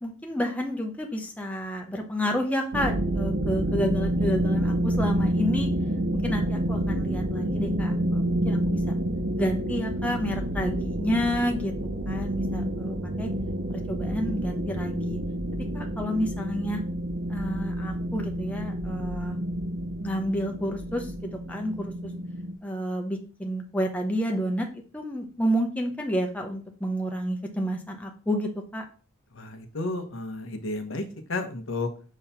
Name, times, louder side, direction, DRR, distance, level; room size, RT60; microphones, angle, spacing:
voice 1, 0.0-5.7 6.1-8.8 9.4-11.7 12.1-13.3 13.7-15.2 15.7-16.8 17.3-19.4 20.0-22.1 22.6-24.7 24.9-28.8, equal, 5° left, 2 dB, 0.8 m, -30 dB
sound 1, 2.7-22.5, right 1 dB, 55° right, 0.7 m, -28 dB
voice 2, 29.3-31.0 31.3-31.9, left 2 dB, 75° left, 6 dB, 1.0 m, -32 dB
5.6 x 3.1 x 5.6 m, 0.37 s
head